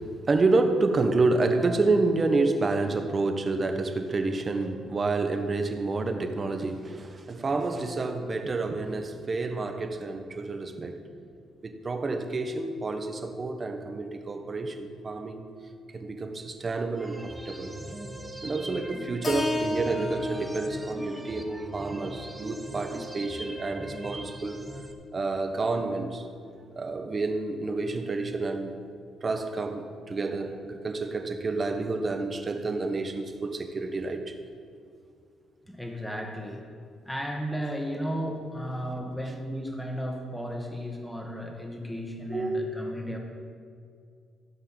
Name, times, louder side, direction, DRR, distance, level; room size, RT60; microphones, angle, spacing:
voice 1, 0.0-11.0 11.6-15.5 15.9-17.7 18.4-24.6 25.1-26.3 26.7-28.7 29.2-34.4 42.3-42.6, right 3 dB, 35° right, 6 dB, 1.3 m, -29 dB
sound 1, 16.9-24.9, right 1 dB, 10° right, 1.3 m, -40 dB
Keyboard (musical), 19.2-23.5, left 2 dB, 35° left, 2.0 m, -35 dB
voice 2, 35.7-36.6 37.0-43.2, equal, 5° left, 1 dB, 2.0 m, -34 dB
15.5 x 5.6 x 7.6 m, 2.3 s
cardioid pair, 90°, 0 cm